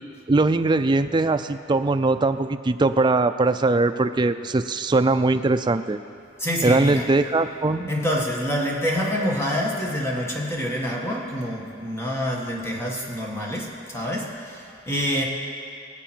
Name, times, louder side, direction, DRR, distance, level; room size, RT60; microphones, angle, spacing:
voice 1, 0.3-6.0 6.6-7.9, right 3 dB, 25° right, 9 dB, 0.4 m, -21 dB
voice 2, 6.4-7.1 7.9-15.2, equal, 15° left, -2 dB, 1.7 m, -26 dB
23.0 x 8.1 x 4.5 m, 2.5 s
head